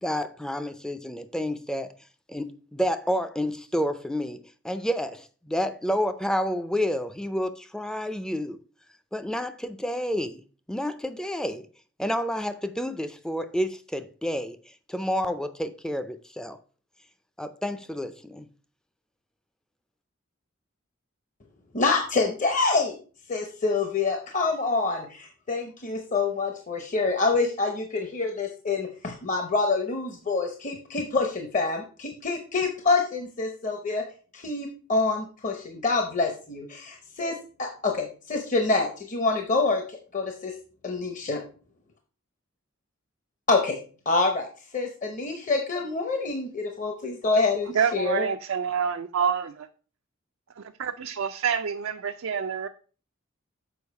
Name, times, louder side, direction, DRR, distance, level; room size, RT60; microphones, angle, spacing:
voice 1, 0.0-1.9 2.3-8.6 9.1-10.4 10.7-11.7 12.0-14.6 14.9-16.6 17.4-18.5, equal, 5° left, 0.4 m, -29 dB
voice 2, 21.7-23.0 23.3-34.0 34.3-37.3 37.6-40.5 40.8-41.4 43.5-43.8 44.1-44.5 44.7-48.3, left 3 dB, 35° left, 0.8 m, -26 dB
voice 3, 47.7-49.7 50.6-52.7, right 7 dB, 70° right, 0.4 m, -27 dB
7.0 x 4.8 x 4.6 m
head